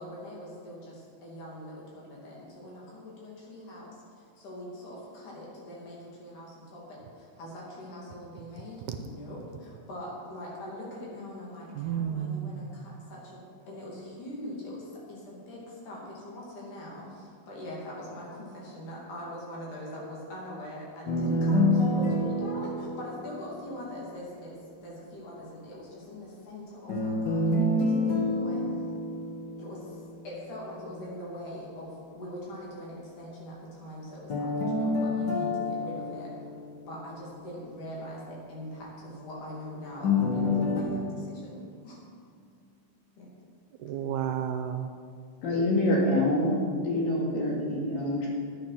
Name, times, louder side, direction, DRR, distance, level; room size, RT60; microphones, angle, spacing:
voice 1, 0.0-4.0 4.4-13.4 13.7-24.5 24.8-28.8 29.6-36.3 36.9-42.0 43.2-43.3, left 1 dB, 70° left, -5 dB, 4.2 m, -42 dB
voice 2, 11.8-12.7 43.8-44.9, right 9 dB, 80° right, 6 dB, 2.0 m, -31 dB
sound 1, 21.1-24.1 26.9-30.1 34.3-37.4 40.0-40.8, left 2 dB, 45° left, 1.7 m, -28 dB
voice 3, 45.4-48.3, left 1 dB, 90° left, -3 dB, 4.0 m, -26 dB
11.0 x 9.0 x 5.8 m, 2.2 s
omnidirectional pair, 3.8 m